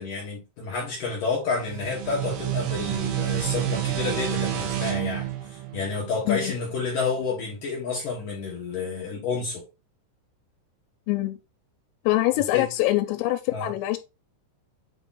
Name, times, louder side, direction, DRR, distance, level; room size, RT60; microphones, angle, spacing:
voice 1, 0.0-9.6 12.5-12.7 13.5-13.7, left 4 dB, 65° left, 2.2 m, -30 dB
sound 1, 1.5-6.8, right 12 dB, 90° right, 3.9 m, -29 dB
voice 2, 11.1-11.4 12.0-14.0, left 17 dB, 90° left, 3.3 m, -24 dB
8.4 x 3.0 x 3.9 m
omnidirectional pair, 5.8 m